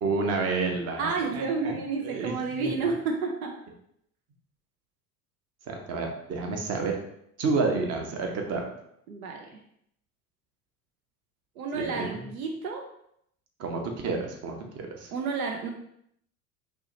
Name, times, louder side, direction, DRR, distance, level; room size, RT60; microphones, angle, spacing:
voice 1, 0.0-1.8 2.0-2.7 5.7-7.0 7.4-8.6 11.7-12.2 13.6-15.1, right 4 dB, 35° right, 2 dB, 0.9 m, -30 dB
voice 2, 1.0-3.5 9.1-9.6 11.6-12.8 14.6-14.7 15.1-15.7, right 4 dB, 70° right, 2 dB, 0.6 m, -30 dB
4.6 x 3.1 x 2.7 m, 0.73 s
figure-of-eight pair, 75°, 45 cm